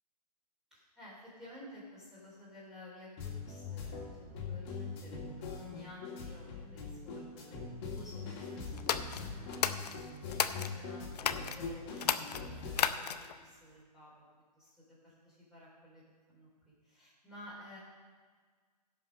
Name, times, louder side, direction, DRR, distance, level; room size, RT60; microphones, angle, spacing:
voice 1, 0.7-14.3 14.6-16.5 16.8-17.8, left 1 dB, ahead, -8 dB, 3.6 m, -54 dB
sound 1, 3.2-12.8, left 4 dB, 40° left, 2.3 m, -42 dB
sound 2, 8.8-10.7 11.2-11.6 12.0-13.4, left 8 dB, 70° left, 0.7 m, -33 dB
16.5 x 5.6 x 5.2 m, 1.5 s
hypercardioid pair, 140°, 21 cm